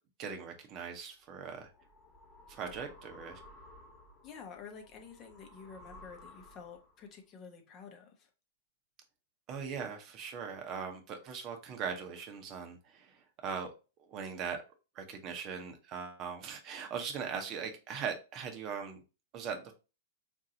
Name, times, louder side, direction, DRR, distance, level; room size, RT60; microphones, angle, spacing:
voice 1, 0.2-1.7 2.5-3.4 9.5-13.7 14.0-14.6 14.9-19.0 19.3-19.7, right 6 dB, 35° right, 4 dB, 0.8 m, -40 dB
sound 1, 1.3-7.0, left 1 dB, 15° left, 1.3 m, -56 dB
voice 2, 4.2-8.1, left 6 dB, 35° left, 4 dB, 0.8 m, -50 dB
3.8 x 2.6 x 2.7 m, 0.31 s
hypercardioid pair, 105°, 0 cm